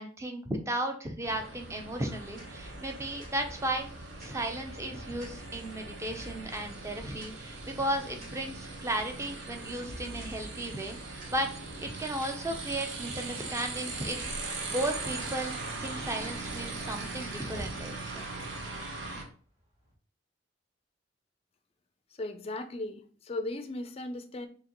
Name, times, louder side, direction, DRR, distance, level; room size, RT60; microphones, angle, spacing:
voice 1, 0.0-3.9 4.2-11.5 11.8-15.5 15.8-18.3, right 1 dB, 15° right, 4 dB, 0.6 m, -35 dB
sound 1, 1.2-19.2, right 3 dB, 90° right, 0.9 m, -40 dB
sound 2, 2.1-18.0, equal, 55° right, 1.7 m, -51 dB
sound 3, 11.7-19.9, equal, 35° right, 1.7 m, -53 dB
voice 2, 22.2-24.5, left 2 dB, 35° left, 8 dB, 0.4 m, -37 dB
5.0 x 2.9 x 3.0 m, 0.42 s
head